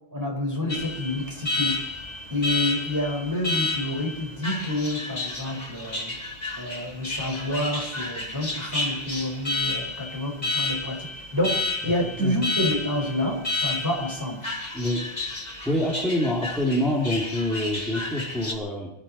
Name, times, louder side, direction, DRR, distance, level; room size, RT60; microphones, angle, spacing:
voice 1, 0.1-1.8 2.3-6.2 6.6-14.5, left 1 dB, 15° right, 0 dB, 5.4 m, -28 dB
Alarm, 0.7-18.5, left 2 dB, 35° left, 3.0 m, -31 dB
voice 2, 11.8-12.4 14.7-15.1 15.6-18.9, left 1 dB, ahead, -4 dB, 3.1 m, -26 dB
21.0 x 13.5 x 4.4 m, 0.77 s
omnidirectional pair, 1.3 m